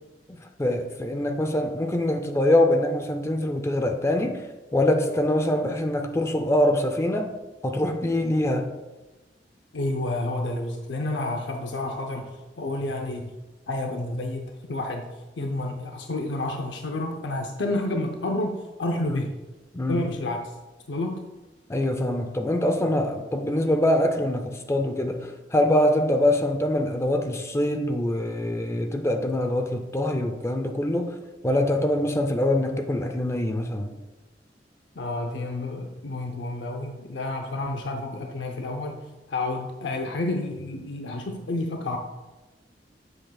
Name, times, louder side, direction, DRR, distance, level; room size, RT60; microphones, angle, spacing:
voice 1, 0.6-4.4 4.7-7.3 7.6-8.7 19.1-19.3 19.7-20.0 21.7-31.1 31.4-33.9, left 1 dB, 15° left, 6 dB, 0.5 m, -24 dB
voice 2, 9.7-13.3 13.7-15.1 15.4-19.4 19.9-20.4 20.9-21.2 35.0-42.0, left 2 dB, 90° left, 3 dB, 0.6 m, -30 dB
7.8 x 7.7 x 2.3 m, 1.1 s
head